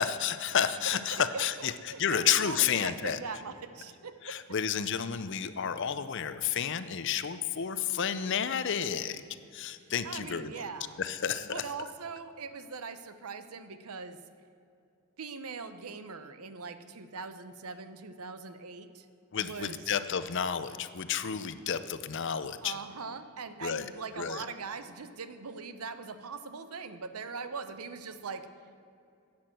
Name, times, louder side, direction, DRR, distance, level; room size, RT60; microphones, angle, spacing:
voice 1, 0.0-1.7 2.0-3.2 4.2-9.2 9.5-10.5 11.0-11.6 19.3-22.8 23.6-23.9 24.2-24.4, left 8 dB, 55° left, 12 dB, 0.6 m, -31 dB
voice 2, 0.8-4.4 10.0-11.0 11.5-14.2 15.2-19.1 19.4-19.8 22.6-28.5, right 4 dB, 85° right, 11 dB, 0.8 m, -41 dB
12.0 x 8.8 x 7.6 m, 2.6 s
head